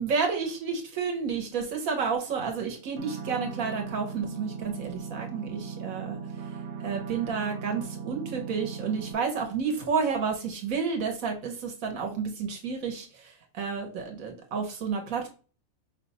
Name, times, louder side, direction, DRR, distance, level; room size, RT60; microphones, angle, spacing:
voice 1, 0.0-6.2 6.8-15.3, right 5 dB, 80° right, 3 dB, 1.3 m, -30 dB
sound 1, 3.0-9.1, right 6 dB, 65° right, 0.8 m, -38 dB
5.2 x 2.2 x 4.0 m, 0.37 s
omnidirectional pair, 1.4 m